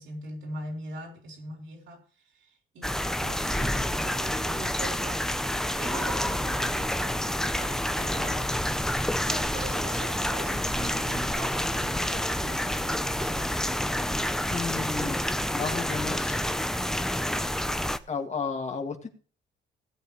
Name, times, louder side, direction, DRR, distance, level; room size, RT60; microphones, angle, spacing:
voice 1, 0.0-5.3 5.7-8.6 9.3-13.8, right 2 dB, 75° right, 3.4 m, -42 dB
sound 1, 2.8-18.0, left 1 dB, ahead, 0.7 m, -28 dB
voice 2, 14.5-15.2 15.5-16.4 18.1-19.1, left 5 dB, 35° left, 2.1 m, -32 dB
17.5 x 8.0 x 3.2 m
cardioid pair, 90°, 20 cm